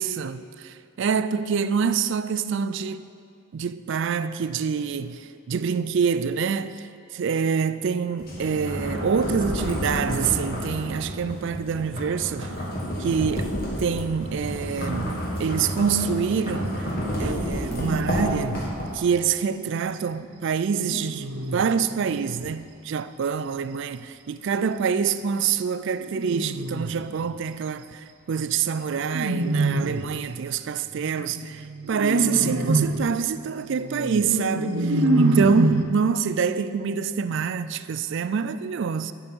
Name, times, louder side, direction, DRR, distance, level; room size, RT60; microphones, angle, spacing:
voice 1, 0.0-3.0 3.5-6.9 7.1-12.6 13.0-16.9 17.2-39.1, right 6 dB, 55° right, 0.3 m, -26 dB
sound 1, 8.2-19.2, equal, 45° left, 1.8 m, -30 dB
sound 2, 16.6-17.1 17.7-18.7 20.1-22.5 25.8-27.3 29.0-30.2 31.0-35.8, right 2 dB, 85° right, 0.8 m, -27 dB
8.7 x 6.3 x 7.7 m
head